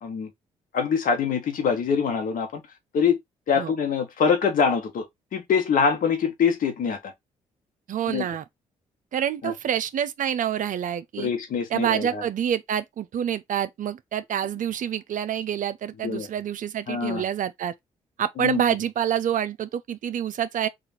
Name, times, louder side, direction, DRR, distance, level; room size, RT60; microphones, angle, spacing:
voice 1, 0.7-2.6 2.9-3.2 3.5-5.1 5.3-7.1 8.1-8.2 9.4-9.5 11.2-12.2 16.0-16.3 16.9-17.2 18.4-18.6, left 6 dB, 65° left, 1.3 m, -24 dB
voice 2, 7.9-8.4 9.1-11.3 11.7-17.7 18.2-20.7, right 9 dB, 60° right, 0.5 m, -27 dB
3.8 x 2.5 x 4.2 m
hypercardioid pair, 45°, 16 cm